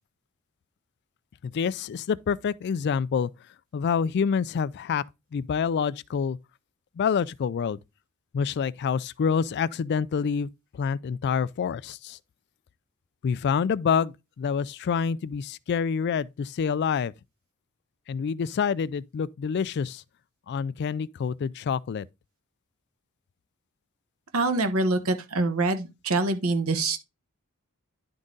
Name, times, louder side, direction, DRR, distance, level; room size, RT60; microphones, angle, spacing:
voice 1, 1.4-3.3 3.7-5.0 5.3-6.4 7.0-7.8 8.3-12.2 13.2-17.1 18.1-20.0 20.5-22.1, left 6 dB, 50° left, 0.3 m, -27 dB
voice 2, 24.3-27.0, right 2 dB, 80° right, 1.1 m, -25 dB
10.5 x 3.9 x 3.7 m
head